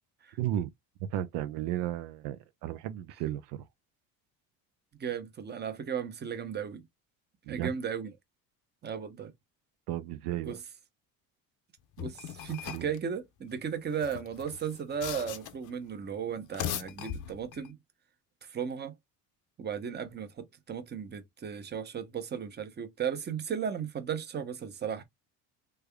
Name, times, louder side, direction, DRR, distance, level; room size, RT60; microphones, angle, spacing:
voice 1, 0.4-0.7 1.1-3.6 7.5-7.7 9.9-10.6 12.7-12.9, right 12 dB, 85° right, 0.6 m, -34 dB
voice 2, 5.0-6.8 7.5-8.1 8.8-9.3 10.4-10.6 12.0-17.8 18.4-18.9 19.6-25.0, right 7 dB, 25° right, 0.8 m, -35 dB
sound 1, 12.0-13.0 13.9-15.7 16.4-17.7, left 11 dB, 50° left, 0.6 m, -39 dB
3.3 x 3.3 x 2.3 m
cardioid pair, 115°, 38 cm